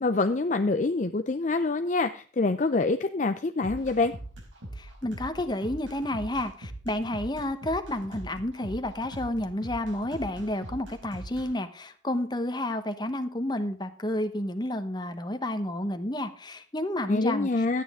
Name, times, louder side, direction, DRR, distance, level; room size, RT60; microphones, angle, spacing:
voice 1, 0.0-4.1 17.1-17.8, left 3 dB, 40° left, 8 dB, 0.5 m, -26 dB
sound 1, 3.6-11.5, right 1 dB, 90° right, 4.2 m, -42 dB
voice 2, 4.8-17.8, left 1 dB, 20° left, 8 dB, 1.0 m, -31 dB
13.0 x 9.4 x 3.6 m, 0.42 s
head